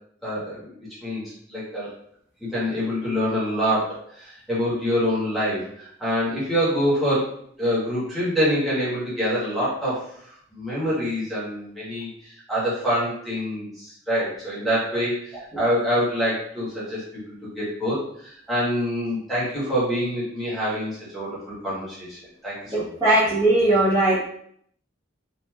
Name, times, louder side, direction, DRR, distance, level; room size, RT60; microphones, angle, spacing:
voice 1, 0.2-2.0 2.4-7.3 7.6-22.8, equal, ahead, -9 dB, 1.1 m, -26 dB
voice 2, 22.7-24.2, right 1 dB, 20° right, -12 dB, 0.8 m, -19 dB
2.9 x 2.5 x 2.3 m, 0.67 s
head